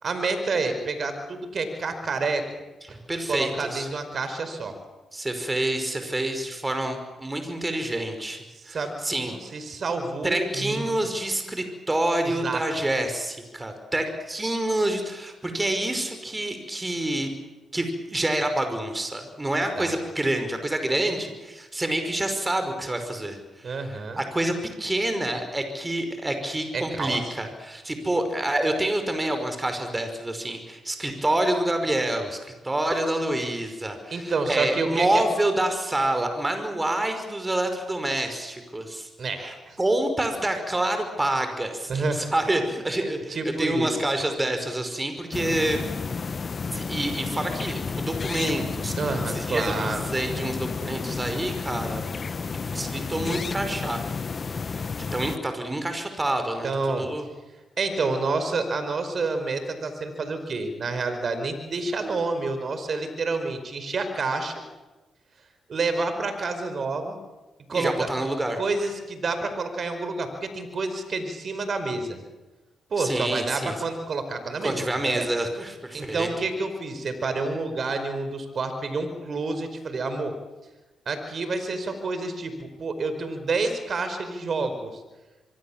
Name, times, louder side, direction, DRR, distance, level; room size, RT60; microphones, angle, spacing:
voice 1, 0.0-2.5 3.3-4.8 8.5-8.9 9.3-10.9 12.2-12.6 19.8-19.9 23.6-24.2 26.7-27.2 34.1-35.2 39.2-39.8 41.9-42.3 43.3-44.0 49.0-50.0 56.6-57.1 57.8-64.6 65.7-67.2 67.7-68.1 68.6-72.2 72.9-75.3 75.9-80.4 81.0-85.0, right 3 dB, 55° right, 8 dB, 4.9 m, -28 dB
voice 2, 2.9-3.9 5.1-9.3 10.2-17.3 17.7-23.8 24.2-39.1 39.8-45.8 46.7-48.9 49.3-52.0 52.7-54.0 55.0-56.7 57.0-57.3 67.7-68.6 73.0-73.8 74.6-76.3, right 1 dB, 20° right, 7 dB, 5.4 m, -27 dB
sound 1, 45.3-55.4, left 5 dB, 45° left, 1.1 m, -31 dB
25.0 x 23.5 x 7.5 m, 1.1 s
hypercardioid pair, 45°, 0 cm